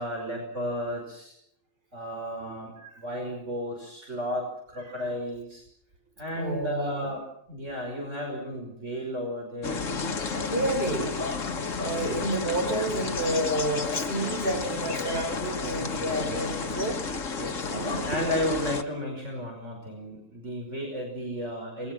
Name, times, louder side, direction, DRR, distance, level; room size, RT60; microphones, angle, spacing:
voice 1, 0.0-1.3 1.9-5.6 6.2-9.8 15.7-17.0 17.4-21.9, equal, 60° right, 1 dB, 5.8 m, -33 dB
voice 2, 6.3-7.1 10.3-11.1 11.8-17.0 17.6-18.1, right 1 dB, 45° right, 2 dB, 7.1 m, -30 dB
sound 1, 9.6-18.8, left 4 dB, 70° left, 1.9 m, -32 dB
28.0 x 21.5 x 6.1 m, 0.69 s
omnidirectional pair, 1.4 m